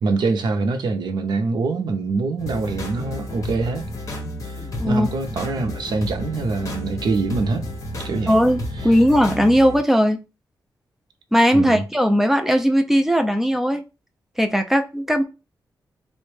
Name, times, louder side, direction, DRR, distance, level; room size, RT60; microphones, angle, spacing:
voice 1, 0.0-3.9 4.4-7.7 8.0-8.4 11.5-11.8, right 3 dB, 85° right, 0.5 m, -24 dB
sound 1, 2.4-9.8, left 1 dB, 45° left, 0.8 m, -31 dB
voice 2, 8.3-10.2 11.3-13.8 14.4-15.2, equal, 5° right, 0.4 m, -18 dB
3.3 x 2.1 x 3.2 m
wide cardioid pair, 160°, 7 cm